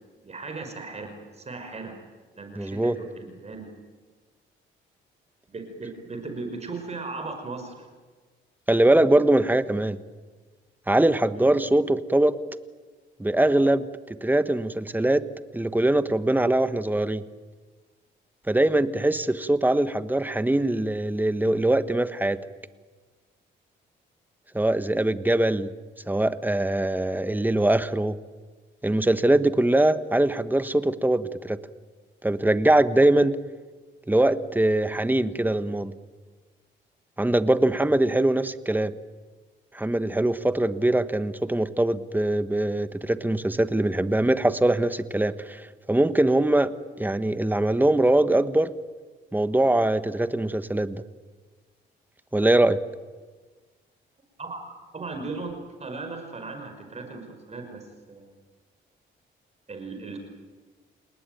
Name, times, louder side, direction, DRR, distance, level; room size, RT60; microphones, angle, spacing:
voice 1, 0.2-1.9 2.3-3.7 5.5-7.8 11.3-11.6 54.4-54.6 54.9-55.5 55.8-57.8 58.1-58.3 59.7-60.2, right 3 dB, 35° right, 5 dB, 5.5 m, -37 dB
voice 2, 2.6-3.0 8.7-10.0 10.9-12.4 13.2-13.9 14.2-15.2 15.5-17.2 18.5-22.4 24.5-25.7 26.1-28.2 28.8-31.6 32.2-33.4 34.1-36.0 37.2-38.9 39.7-46.7 47.0-48.7 49.3-51.0 52.3-52.8, right 1 dB, 10° right, 12 dB, 1.3 m, -22 dB
29.5 x 19.0 x 9.3 m, 1.4 s
cardioid pair, 90°, 20 cm